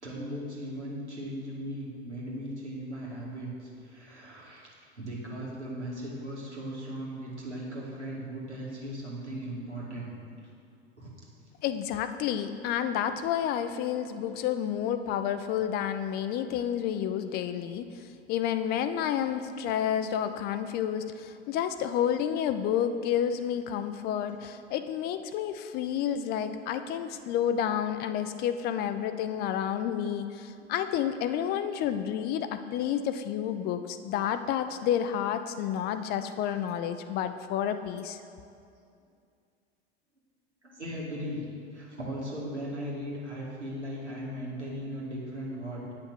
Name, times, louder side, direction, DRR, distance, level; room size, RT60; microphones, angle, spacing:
voice 1, 0.0-4.7 5.0-10.1 11.0-11.1 30.6-30.8 40.6-41.4 41.7-45.9, equal, 85° right, -5 dB, 2.2 m, -38 dB
voice 2, 11.6-38.2, left 9 dB, 30° left, 10 dB, 0.4 m, -30 dB
9.0 x 5.7 x 6.2 m, 2.4 s
figure-of-eight pair, 80°, 33 cm